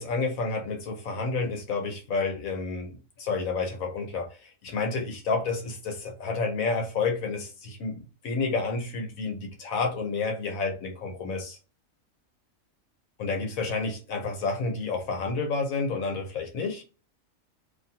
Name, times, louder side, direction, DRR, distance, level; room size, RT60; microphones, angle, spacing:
voice 1, 0.0-4.3 4.6-11.6 13.2-16.8, left 4 dB, 90° left, 1.4 m, -30 dB
2.9 x 2.8 x 3.8 m
omnidirectional pair, 1.4 m